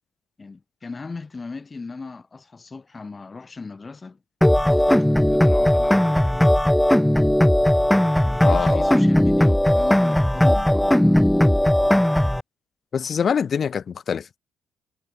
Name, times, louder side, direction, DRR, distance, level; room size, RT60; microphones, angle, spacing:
voice 1, 0.4-4.2 4.6-6.6 8.2-11.2, left 4 dB, 35° left, 1.3 m, -37 dB
sound 1, 4.4-12.4, left 1 dB, 5° left, 0.5 m, -18 dB
voice 2, 8.4-8.8 12.9-14.4, left 7 dB, 55° left, 0.6 m, -24 dB
hypercardioid pair, 55°, 0 cm